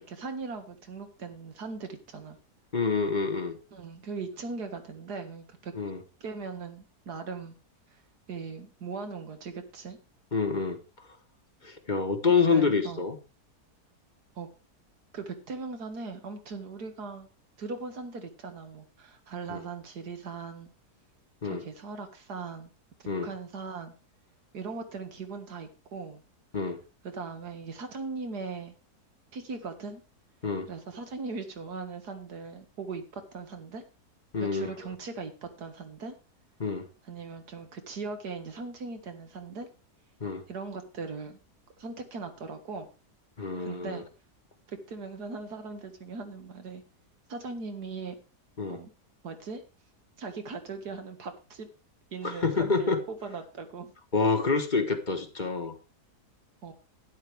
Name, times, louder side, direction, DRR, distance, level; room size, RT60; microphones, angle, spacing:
voice 1, 0.0-2.4 3.7-5.7 6.2-7.6 7.9-8.0 8.3-10.0 12.3-13.1 14.4-14.5 15.1-17.3 17.6-20.7 21.4-22.7 23.0-23.9 24.5-26.2 27.0-28.7 29.3-30.0 30.7-33.8 34.4-36.2 37.0-39.7 40.5-41.4 41.8-42.9 43.6-44.0 44.7-46.8 47.3-48.2 48.7-48.9 49.2-49.6 50.2-51.7 52.1-53.9 56.6-56.7, right 4 dB, 80° right, 7 dB, 2.2 m, -39 dB
voice 2, 2.7-3.6 5.7-6.0 10.3-10.8 11.6-13.2 19.5-19.6 21.4-21.6 23.1-23.3 26.5-26.8 30.4-30.7 34.3-34.7 36.6-36.9 40.2-40.4 43.4-44.0 48.6-48.8 52.2-53.0 54.1-55.7, left 4 dB, 30° left, 7 dB, 1.2 m, -27 dB
12.0 x 10.5 x 3.4 m, 0.30 s
omnidirectional pair, 1.7 m